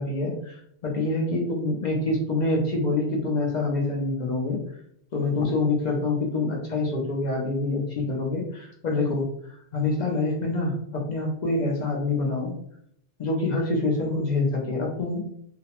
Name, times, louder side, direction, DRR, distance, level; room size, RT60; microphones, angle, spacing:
voice 1, 0.0-4.6 5.1-12.5 13.2-15.3, left 2 dB, 60° left, -1 dB, 0.4 m, -26 dB
2.4 x 2.0 x 2.8 m, 0.68 s
omnidirectional pair, 1.2 m